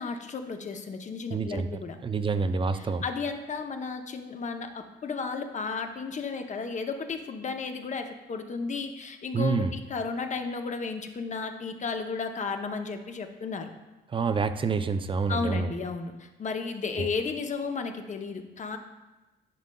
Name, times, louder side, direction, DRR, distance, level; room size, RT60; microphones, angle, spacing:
voice 1, 0.0-2.0 2.7-13.7 15.3-18.8, left 4 dB, 35° left, 6 dB, 0.7 m, -33 dB
voice 2, 1.3-1.7 2.0-3.0 9.3-9.7 14.1-15.7 17.0-17.1, right 4 dB, 25° right, 10 dB, 0.4 m, -27 dB
10.5 x 5.1 x 2.2 m, 1.1 s
cardioid pair, 90°, 20 cm